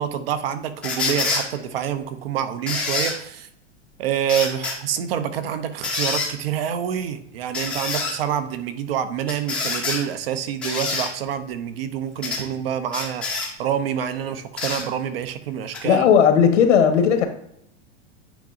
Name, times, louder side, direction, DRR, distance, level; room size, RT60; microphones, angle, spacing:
voice 1, 0.0-3.5 4.0-16.0, right 9 dB, 55° right, 11 dB, 0.7 m, -27 dB
sound 1, 0.8-1.4 2.7-3.1 4.3-4.8 5.8-6.3 7.5-8.1 9.3-10.0 10.6-11.1 12.2-12.4 12.9-13.5 14.6-14.8 15.7-15.8, left 4 dB, 5° left, 0.5 m, -26 dB
voice 2, 15.8-17.3, left 7 dB, 85° left, 7 dB, 1.2 m, -16 dB
9.1 x 4.7 x 2.5 m, 0.74 s
supercardioid pair, 175°, 36 cm